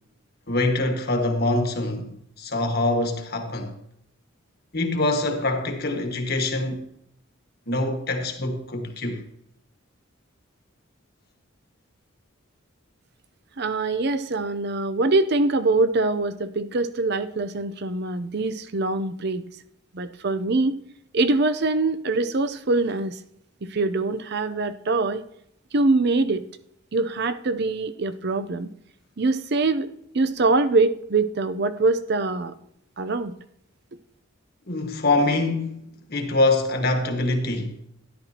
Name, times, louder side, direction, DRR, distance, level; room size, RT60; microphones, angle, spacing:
voice 1, 0.5-3.7 4.7-6.9 7.7-9.2 34.7-35.8 36.1-37.8, left 2 dB, 50° left, 1.6 m, -24 dB
voice 2, 13.6-19.5 19.9-20.8 21.1-23.2 23.6-25.2 25.7-26.5 26.9-28.7 29.2-29.9 30.1-32.5 33.0-33.3, right 3 dB, 55° right, 0.6 m, -23 dB
13.0 x 11.0 x 2.9 m
head